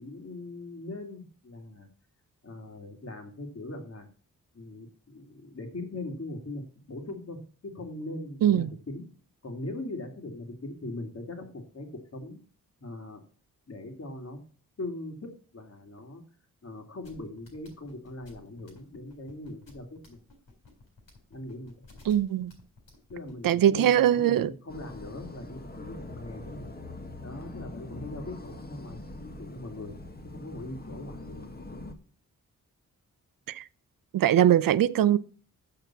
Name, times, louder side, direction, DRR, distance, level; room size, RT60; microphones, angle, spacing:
voice 1, 0.0-1.9 2.4-4.1 4.5-6.6 6.9-7.4 7.6-9.0 9.4-11.9 12.1-12.4 12.8-13.2 13.7-14.4 14.8-16.2 16.6-20.2 21.3-21.7 23.1-26.8 27.2-29.9 30.2-31.5 31.7-31.8, left 2 dB, 45° left, 2.4 m, -40 dB
voice 2, 8.4-8.7 22.1-22.5 23.4-24.5 33.5-33.6 34.1-35.2, right 11 dB, 75° right, 0.6 m, -22 dB
sound 1, 17.0-23.5, left 3 dB, 70° left, 4.1 m, -53 dB
sound 2, 24.7-31.9, left 2 dB, 25° left, 1.4 m, -43 dB
6.8 x 5.8 x 7.2 m
cardioid pair, 60°, 34 cm